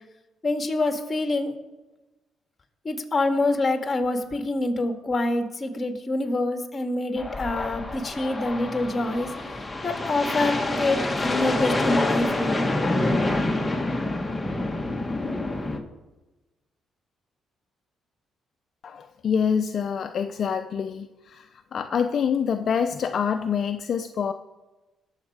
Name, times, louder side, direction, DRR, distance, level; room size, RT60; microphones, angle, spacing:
voice 1, 0.4-1.5 2.8-9.3 9.8-12.7, left 2 dB, 30° left, 5 dB, 1.9 m, -26 dB
sound 1, 7.2-15.8, left 2 dB, 15° left, 1.5 m, -27 dB
voice 2, 18.8-24.3, left 7 dB, 55° left, 7 dB, 0.6 m, -26 dB
20.0 x 7.3 x 4.9 m, 1.1 s
cardioid pair, 90°, 0 cm